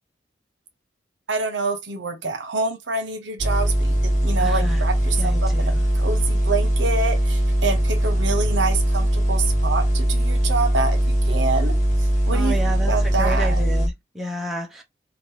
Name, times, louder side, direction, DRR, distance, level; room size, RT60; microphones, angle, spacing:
voice 1, 1.3-12.6 12.9-13.6, right 3 dB, 80° right, 0.9 m, -27 dB
sound 1, 3.4-13.9, right 1 dB, 40° left, 1.2 m, -20 dB
voice 2, 4.4-4.8 5.2-5.8 12.3-14.8, right 1 dB, ahead, 0.8 m, -31 dB
2.9 x 2.6 x 3.2 m
head